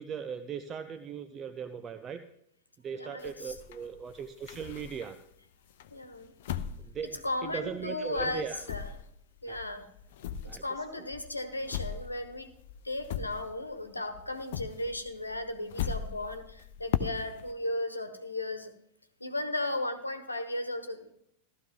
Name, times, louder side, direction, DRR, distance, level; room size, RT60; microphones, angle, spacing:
voice 1, 0.0-2.2 2.8-5.2 6.8-8.6 9.5-9.6 10.5-11.1, right 7 dB, 25° right, 9 dB, 0.7 m, -39 dB
voice 2, 3.0-3.5 5.9-6.3 7.2-8.9 9.4-9.8 10.4-12.5 12.8-18.7 19.2-21.1, left 1 dB, 85° left, 9 dB, 1.2 m, -35 dB
sound 1, 3.2-5.3 5.8-13.9 14.1-17.5, left 8 dB, 55° left, 0.7 m, -38 dB
15.0 x 13.0 x 3.8 m, 0.73 s
figure-of-eight pair, 90°, 0 cm